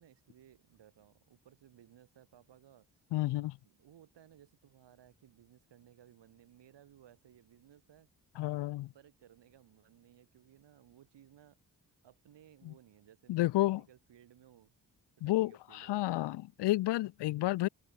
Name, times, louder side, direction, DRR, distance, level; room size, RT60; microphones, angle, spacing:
voice 1, 0.0-8.1 8.9-11.6 12.0-14.7 15.2-16.4, right 11 dB, 80° right, 3.3 m, -61 dB
voice 2, 3.1-3.5 8.4-8.9 12.6-12.7 13.3-13.8 15.2-17.7, left 17 dB, 75° left, 0.5 m, -31 dB
cardioid pair, 60°, 42 cm